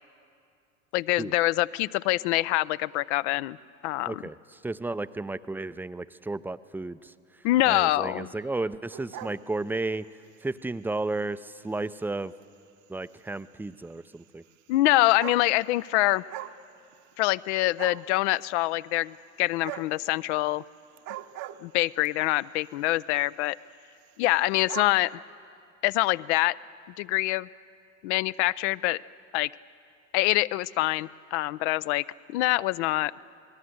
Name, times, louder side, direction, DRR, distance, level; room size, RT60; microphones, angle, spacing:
voice 1, 0.9-3.6 3.8-4.2 7.4-8.3 14.7-16.2 17.2-20.6 21.6-23.6 24.2-25.1 25.8-26.6 27.0-27.5 28.0-29.0 29.3-29.5 30.1-32.0 32.3-33.1, left 18 dB, 60° left, 18 dB, 0.6 m, -25 dB
voice 2, 4.6-7.1 7.7-10.1 10.4-12.3 12.9-14.4, right 2 dB, 5° right, 14 dB, 0.5 m, -33 dB
sound 1, 8.9-10.1 10.7-10.9 11.7-11.8 12.0-12.1 12.4-12.5 13.7-13.8 14.7-14.8 15.0-15.8 16.1-16.6 16.9-17.5 17.8-18.1 19.6-20.0 20.9-22.1 23.0-23.2 23.5-23.6 23.8-23.9 24.1-25.0, right 13 dB, 45° right, 1.0 m, -39 dB
28.0 x 20.0 x 7.9 m, 2.5 s
hypercardioid pair, 75°, 39 cm